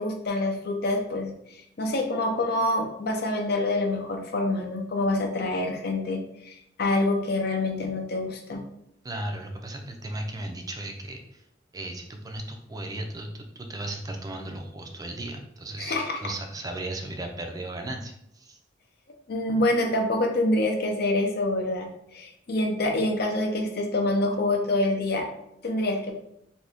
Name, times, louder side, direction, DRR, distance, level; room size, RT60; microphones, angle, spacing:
voice 1, 0.0-8.6 15.8-16.2 19.3-25.3 25.6-26.1, left 2 dB, 55° left, 2 dB, 0.6 m, -26 dB
voice 2, 9.0-11.4 11.7-18.6, right 1 dB, 20° right, 3 dB, 0.4 m, -36 dB
2.8 x 2.6 x 3.4 m, 0.77 s
head